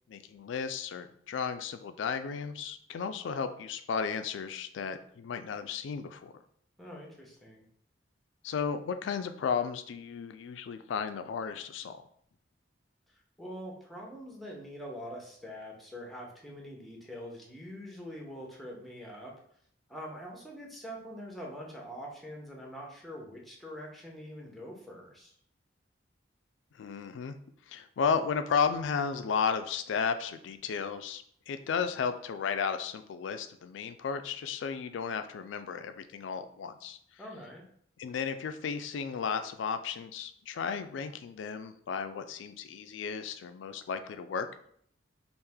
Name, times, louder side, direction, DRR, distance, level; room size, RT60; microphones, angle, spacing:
voice 1, 0.1-6.3 8.4-11.9 26.8-27.4 27.7-37.0 38.0-44.5, left 6 dB, 80° left, 9 dB, 0.3 m, -34 dB
voice 2, 6.8-7.6 13.4-19.3 19.9-25.3 37.2-37.6, equal, ahead, -2 dB, 0.7 m, -44 dB
3.3 x 2.5 x 3.5 m, 0.64 s
head